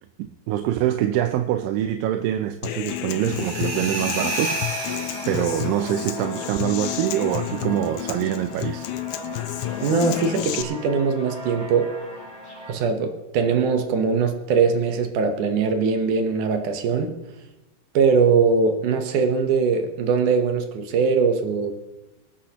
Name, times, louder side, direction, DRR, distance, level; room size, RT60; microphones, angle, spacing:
voice 1, 0.2-8.9, right 12 dB, 90° right, 2.3 m, -25 dB
Human voice / Acoustic guitar, 2.6-10.6, left 13 dB, 80° left, 1.9 m, -31 dB
sound 1, 3.2-5.9, right 1 dB, 30° right, 1.7 m, -30 dB
sound 2, 4.1-12.7, equal, 20° left, 6.0 m, -39 dB
voice 2, 9.8-11.9 12.7-17.2 17.9-21.7, right 5 dB, 70° right, 2.4 m, -21 dB
24.0 x 10.5 x 2.9 m
omnidirectional pair, 3.9 m